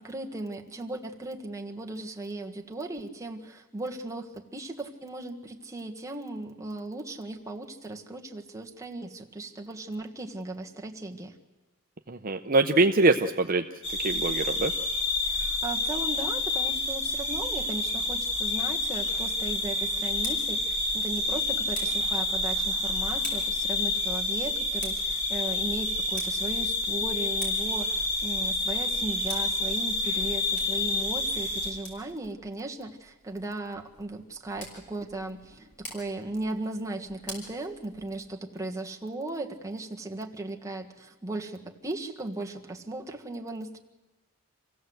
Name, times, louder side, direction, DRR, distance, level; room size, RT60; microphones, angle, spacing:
voice 1, 0.0-11.3 15.3-43.8, right 2 dB, 15° right, 2 dB, 1.5 m, -37 dB
voice 2, 12.1-13.6 14.0-14.7, right 3 dB, 40° right, 5 dB, 0.7 m, -23 dB
sound 1, 13.8-31.7, left 2 dB, 60° left, 4.4 m, -29 dB
Tick, 19.9-38.3, left 1 dB, 35° left, 5.5 m, -47 dB
26.5 x 16.0 x 7.9 m, 1.1 s
head